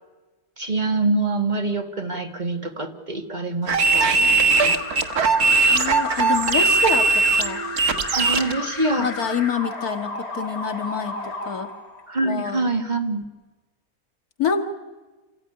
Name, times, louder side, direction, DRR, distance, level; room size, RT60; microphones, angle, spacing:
voice 1, 0.6-4.3 4.6-4.8 8.1-9.1 12.1-13.2, right 2 dB, 30° right, 5 dB, 1.7 m, -25 dB
sound 1, 3.7-8.5, right 3 dB, 80° right, 2.0 m, -19 dB
Alarm, 4.5-12.4, left 3 dB, 45° left, 2.7 m, -33 dB
voice 2, 5.7-7.6 9.0-11.7 12.3-12.7 14.4-14.6, left 6 dB, 80° left, 6 dB, 2.3 m, -27 dB
27.5 x 15.0 x 9.9 m, 1.2 s
omnidirectional pair, 1.6 m